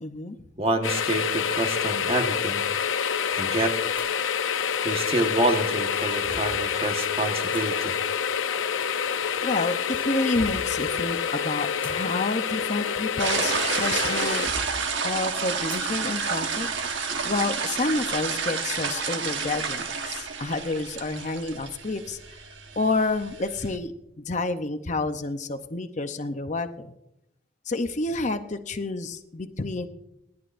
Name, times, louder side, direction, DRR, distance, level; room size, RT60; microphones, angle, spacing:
voice 1, 0.0-0.4 9.4-14.5 15.0-16.7 16.9-22.2 22.8-23.9 24.3-26.9 27.7-29.9, left 3 dB, 40° left, 8 dB, 0.7 m, -29 dB
voice 2, 0.6-2.6 3.4-3.7 4.8-7.9, right 1 dB, 30° right, 4 dB, 1.4 m, -27 dB
sound 1, 0.8-14.5, left 7 dB, 90° left, 0.7 m, -27 dB
sound 2, 3.9-4.2 5.3-6.6 7.5-7.6 8.8-9.4 9.8-10.8 11.5-13.6 14.1-14.8 15.7-15.9 16.3-16.4 17.0-17.2, equal, 10° left, 1.1 m, -42 dB
sound 3, 13.2-23.8, right 5 dB, 70° right, 1.3 m, -30 dB
28.0 x 11.0 x 2.6 m, 0.87 s
head